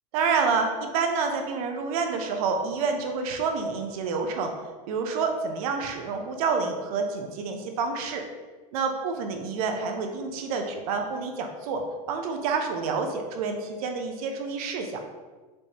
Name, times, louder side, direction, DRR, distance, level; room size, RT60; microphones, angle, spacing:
voice 1, 0.1-4.5 4.9-8.2 8.7-11.8 12.1-15.0, right 5 dB, 70° right, 4 dB, 0.7 m, -28 dB
5.3 x 3.3 x 2.9 m, 1.3 s
supercardioid pair, 125°, 19 cm